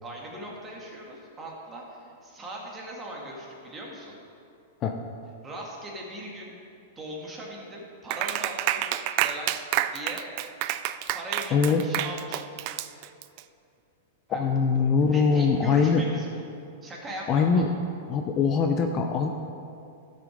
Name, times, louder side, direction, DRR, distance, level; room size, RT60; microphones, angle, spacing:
voice 1, 0.0-4.2 5.4-6.5 7.0-8.8 9.2-10.3 11.1-12.4 14.3-14.4 15.0-16.4 16.8-17.6, right 1 dB, 20° right, -2 dB, 2.0 m, -39 dB
Clapping, 8.1-13.4, right 13 dB, 45° right, 0.4 m, -29 dB
voice 2, 11.5-11.8 14.3-16.0 17.3-17.7 18.1-19.3, left 5 dB, 30° left, 4 dB, 0.6 m, -22 dB
12.0 x 6.3 x 5.1 m, 2.5 s
hypercardioid pair, 135°, 0 cm